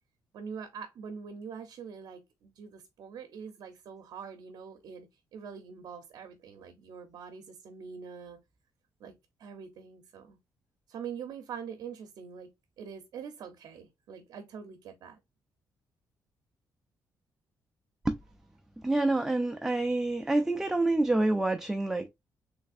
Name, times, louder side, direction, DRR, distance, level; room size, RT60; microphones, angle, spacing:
voice 1, 0.3-8.4 9.0-9.1 9.4-10.4 10.9-12.5 12.8-15.2, right 6 dB, 70° right, 0.6 m, -44 dB
voice 2, 18.8-22.1, right 2 dB, 5° right, 0.3 m, -27 dB
3.3 x 3.2 x 2.4 m
cardioid pair, 135°, 7 cm